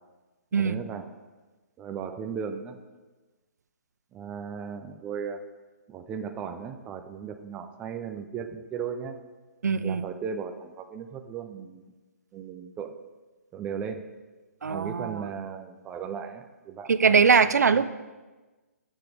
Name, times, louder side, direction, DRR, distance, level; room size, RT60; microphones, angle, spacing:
voice 1, 0.5-1.1 1.8-2.8 4.1-5.4 5.9-9.2 9.8-11.9 12.3-13.0 13.5-14.0 14.7-17.2 17.7-17.9, right 7 dB, 15° right, 7 dB, 0.4 m, -36 dB
voice 2, 9.6-10.0 14.6-15.3 16.9-17.9, right 6 dB, 85° right, 14 dB, 0.5 m, -21 dB
11.5 x 7.1 x 3.4 m, 1.2 s
hypercardioid pair, 150°, 9 cm